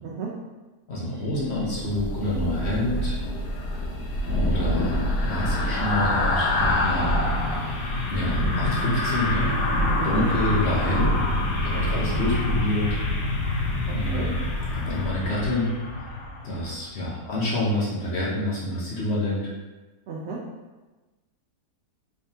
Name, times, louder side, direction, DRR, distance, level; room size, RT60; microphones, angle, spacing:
voice 1, 0.0-0.3 10.0-10.3 13.9-14.3 20.1-20.5, right 4 dB, 85° right, -4 dB, 0.5 m, -33 dB
voice 2, 0.9-3.2 4.3-7.2 8.1-9.5 10.0-11.1 11.6-13.0 13.9-14.3 14.7-15.7 16.4-19.5, left 1 dB, 50° left, -6 dB, 0.9 m, -27 dB
Thunder / Rain, 1.4-15.4, equal, 90° left, 1.3 m, -29 dB
sound 1, 3.5-16.8 17.2-17.4, left 3 dB, 65° left, 1.1 m, -28 dB
3.6 x 3.3 x 2.7 m, 1.2 s
omnidirectional pair, 1.7 m